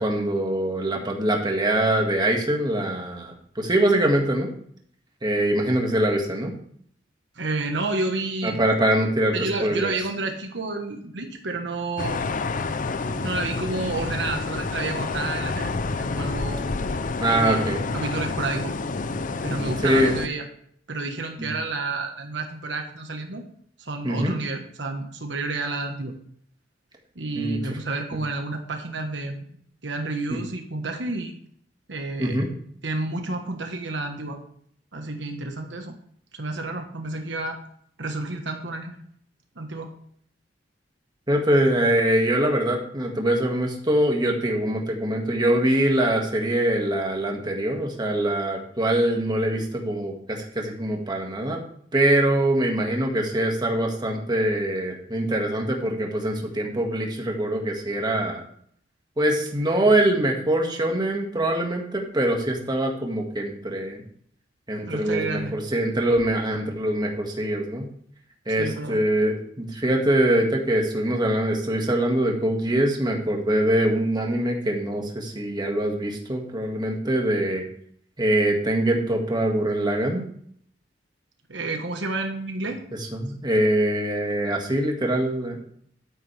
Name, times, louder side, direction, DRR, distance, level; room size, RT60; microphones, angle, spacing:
voice 1, 0.0-4.5 5.2-6.5 8.4-9.3 9.6-9.9 17.2-17.8 19.8-20.2 21.4-21.5 24.0-24.3 27.4-27.6 32.2-32.5 41.3-51.6 51.9-58.4 59.2-64.0 64.7-67.9 68.5-77.7 78.2-80.2 83.1-85.6, right 1 dB, 25° right, 1 dB, 1.9 m, -23 dB
voice 2, 7.3-8.6 9.3-12.2 13.0-15.7 16.0-16.6 17.4-17.6 17.9-18.7 19.4-20.4 20.9-23.4 23.8-26.1 27.1-29.4 29.8-31.3 31.9-32.4 32.8-34.4 34.9-35.9 36.3-37.6 38.0-39.0 39.6-39.9 64.9-65.6 68.5-69.0 81.5-82.8, right 3 dB, 70° right, 4 dB, 1.3 m, -30 dB
sound 1, 12.0-20.3, left 3 dB, 45° left, 0.6 m, -29 dB
11.0 x 9.4 x 3.4 m, 0.63 s
head